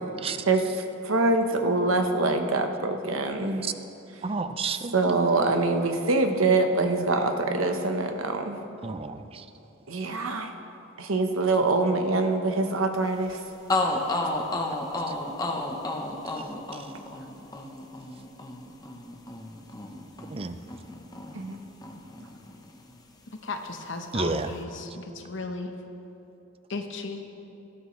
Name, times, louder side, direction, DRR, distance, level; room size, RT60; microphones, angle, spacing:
voice 1, 1.0-3.7 4.9-8.6 9.9-10.5 11.0-13.4 21.3-21.6, right 3 dB, 90° right, 5 dB, 1.0 m, -24 dB
voice 2, 4.2-5.0 8.8-9.4 16.4-16.5 16.7-16.8 20.3-20.6 24.1-24.5, right 4 dB, 30° right, 10 dB, 0.5 m, -31 dB
sound 1, 13.3-13.4 13.7-21.6 21.8-23.0, left 2 dB, 20° left, 0.8 m, -32 dB
voice 3, 23.4-25.7 26.7-27.2, left 3 dB, 65° left, 5 dB, 0.9 m, -35 dB
18.5 x 12.5 x 3.2 m, 2.9 s
head